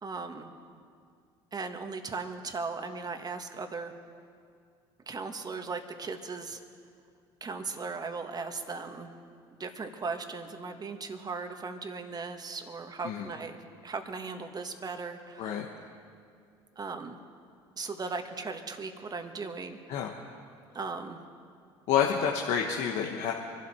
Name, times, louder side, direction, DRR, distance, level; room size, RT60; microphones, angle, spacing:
voice 1, 0.0-0.5 1.5-3.9 5.1-6.6 7.4-9.1 9.6-13.6 13.8-15.5 16.7-17.2 17.8-20.0 20.7-21.2, right 4 dB, 30° right, 6 dB, 1.6 m, -37 dB
voice 2, 21.9-23.3, left 8 dB, 65° left, 1 dB, 1.2 m, -28 dB
24.5 x 12.0 x 4.4 m, 2.4 s
hypercardioid pair, 65°, 13 cm